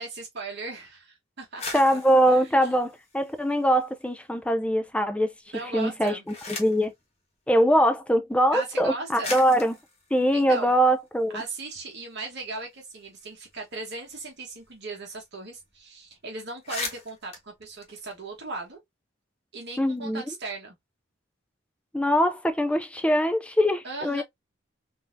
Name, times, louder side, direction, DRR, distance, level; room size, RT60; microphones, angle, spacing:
voice 1, 0.0-1.6 1.9-2.0 2.3-2.5 5.5-6.2 8.5-9.3 10.3-10.7 11.3-18.8 19.5-20.7 23.8-24.2, right 3 dB, 55° right, 1.1 m, -37 dB
sound 1, 1.4-4.0 4.4-5.0 5.8-6.9 8.0-8.1 8.8-8.9 9.2-11.5 11.9-12.0 12.2-14.9 15.1-15.2 15.5-15.8 16.1-16.2 16.5-18.7, left 3 dB, 30° left, 1.1 m, -40 dB
voice 2, 1.7-5.3 5.7-6.2 6.5-6.9 7.5-9.7 10.1-11.4 19.8-20.2 21.9-24.2, equal, 5° left, 0.4 m, -22 dB
3.9 x 2.7 x 2.5 m
head